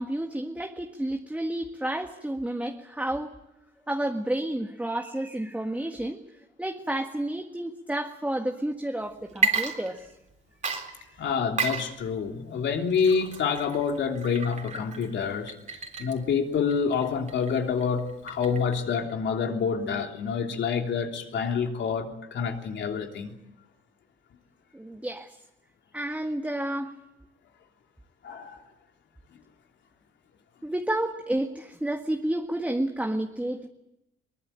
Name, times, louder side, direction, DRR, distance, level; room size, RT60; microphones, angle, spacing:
voice 1, 0.0-3.3 3.9-6.2 6.6-10.1 10.9-11.0 24.7-25.3 25.9-26.9 30.6-33.7, right 1 dB, 5° right, 4 dB, 1.7 m, -30 dB
Water / Liquid, 9.3-10.3 10.6-18.9, right 4 dB, 40° right, 3.7 m, -33 dB
voice 2, 11.2-15.5 16.0-23.3 28.2-28.6, left 6 dB, 65° left, 3 dB, 3.3 m, -27 dB
22.5 x 20.0 x 9.0 m, 0.91 s
cardioid pair, 90°, 20 cm